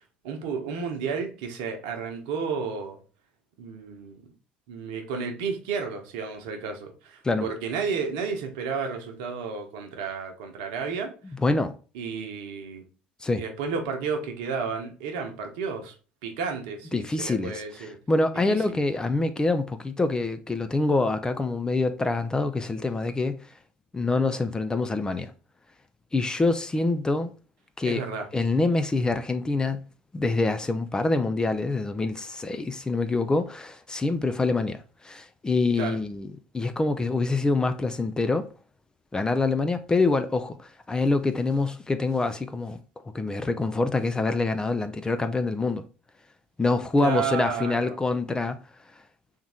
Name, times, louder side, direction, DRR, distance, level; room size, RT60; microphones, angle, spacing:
voice 1, 0.2-3.0 3.6-4.2 4.7-11.1 11.9-12.8 13.4-15.9 16.2-18.0 18.5-18.6 27.8-28.3 35.8-36.0 47.0-48.0, right 5 dB, 60° right, 1.0 m, -32 dB
voice 2, 11.3-11.8 13.2-13.4 16.9-23.4 23.9-25.3 26.1-27.3 27.8-28.1 28.3-29.8 30.1-38.5 39.1-42.8 43.1-45.8 46.6-48.6, left 3 dB, 15° left, 0.4 m, -25 dB
3.6 x 3.0 x 4.2 m
figure-of-eight pair, 60°, 5 cm